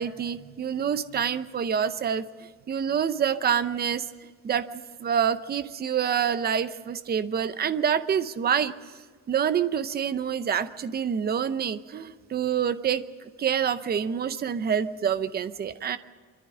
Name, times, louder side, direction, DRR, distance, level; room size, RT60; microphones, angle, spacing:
voice 1, 0.0-2.3 2.7-4.1 4.4-4.7 5.0-8.9 9.3-16.0, right 8 dB, 30° right, 12 dB, 0.7 m, -27 dB
25.0 x 14.0 x 9.9 m, 1.5 s
cardioid pair, 180°, 32 cm